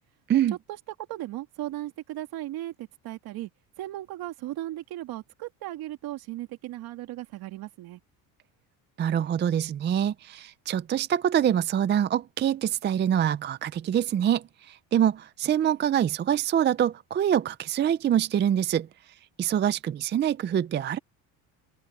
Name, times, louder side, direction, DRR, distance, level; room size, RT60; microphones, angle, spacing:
voice 1, 1.1-3.5 3.8-8.0, right 15 dB, 65° right, 2.8 m, -36 dB
voice 2, 9.0-18.9 19.4-21.0, right 10 dB, 30° right, 0.5 m, -25 dB
cardioid pair, 135°, 39 cm